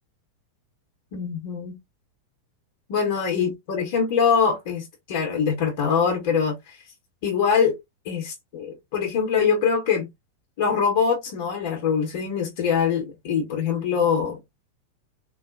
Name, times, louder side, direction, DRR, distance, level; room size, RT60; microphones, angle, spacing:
voice 1, 1.1-1.8 2.9-6.8 7.2-7.8 8.0-10.1 10.6-14.4, left 6 dB, 50° left, 0.8 m, -23 dB
3.8 x 2.0 x 2.4 m
figure-of-eight pair, 90°, 0 cm